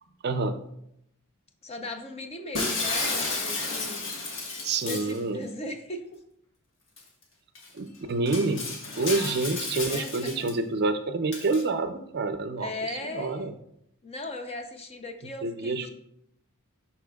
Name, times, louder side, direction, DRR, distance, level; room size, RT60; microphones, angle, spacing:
voice 1, 0.2-0.6 4.6-5.4 7.7-8.6 9.0-12.7 13.0-13.5 15.4-15.9, right 3 dB, 50° right, 9 dB, 0.5 m, -28 dB
voice 2, 1.6-4.1 4.8-6.2 9.9-10.5 12.6-13.5 14.0-15.9, left 2 dB, 30° left, 6 dB, 0.6 m, -38 dB
Shatter, 2.5-5.2 7.0-7.1 7.5-7.7 8.3-10.5 11.3-11.6, left 3 dB, 60° left, 1.4 m, -32 dB
11.0 x 4.3 x 2.3 m, 0.76 s
head